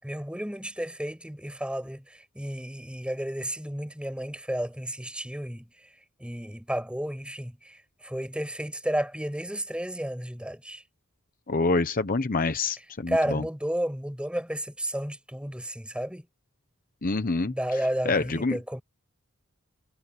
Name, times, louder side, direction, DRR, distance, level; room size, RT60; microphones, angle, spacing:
voice 1, 0.0-5.6 6.2-10.8 13.1-16.2 17.4-18.8, right 1 dB, 5° right, 6.6 m, -32 dB
voice 2, 11.5-13.4 17.0-17.5 18.0-18.6, left 3 dB, 40° left, 0.9 m, -26 dB
head